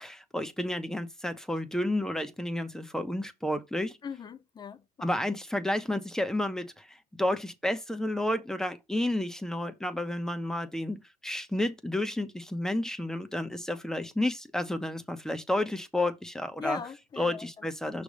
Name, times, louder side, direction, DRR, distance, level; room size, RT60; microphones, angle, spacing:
voice 1, 0.0-4.0 5.0-16.8 17.2-18.0, left 1 dB, 5° left, 1.0 m, -31 dB
voice 2, 4.0-5.1 16.6-18.0, left 6 dB, 25° left, 0.7 m, -40 dB
6.1 x 3.4 x 5.1 m
supercardioid pair, 120°, 18 cm